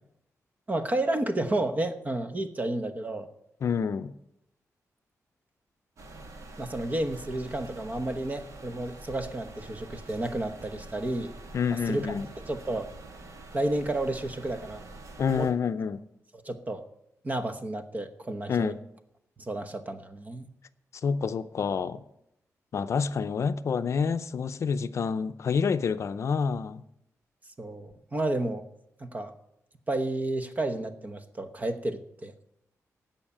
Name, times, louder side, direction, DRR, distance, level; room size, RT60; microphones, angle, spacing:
voice 1, 0.7-3.3 6.6-11.3 11.7-12.1 12.4-12.9 13.5-14.8 15.3-15.5 16.4-16.8 17.2-18.7 19.4-20.5 27.6-28.7 29.0-29.3 29.9-32.5, right 1 dB, 30° right, 9 dB, 1.0 m, -31 dB
voice 2, 3.6-4.1 11.5-12.3 15.2-16.0 18.5-18.8 21.0-22.0 22.7-26.8, left 6 dB, 55° left, 11 dB, 0.5 m, -28 dB
sound 1, 6.0-15.5, right 2 dB, 65° right, 1.8 m, -46 dB
16.0 x 5.7 x 8.6 m, 0.80 s
wide cardioid pair, 155°, 6 cm